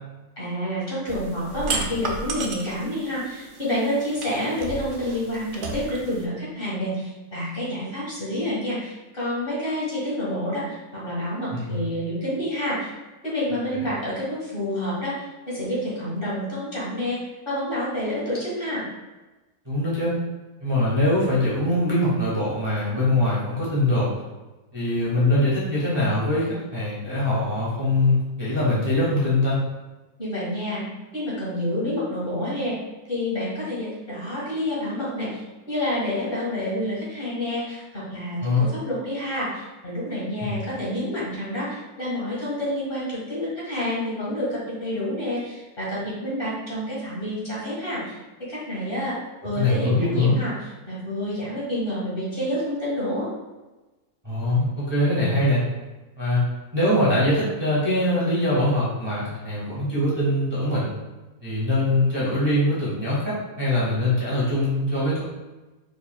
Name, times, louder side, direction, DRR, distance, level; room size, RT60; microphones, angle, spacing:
voice 1, 0.4-12.9 13.2-17.2 17.5-18.8 30.2-30.8 31.1-32.8 33.1-48.2 48.5-49.2 49.4-53.3, left 1 dB, 35° left, -8 dB, 1.8 m, -28 dB
sound 1, 1.1-6.2, right 4 dB, 75° right, 0.4 m, -34 dB
voice 2, 19.6-20.1 20.6-24.1 24.7-29.6 38.4-38.7 40.4-40.5 49.6-50.4 54.2-55.6 56.2-56.4 56.7-60.9 61.4-65.2, left 1 dB, 15° right, -8 dB, 1.4 m, -22 dB
4.9 x 4.7 x 2.2 m, 1.1 s
omnidirectional pair, 1.6 m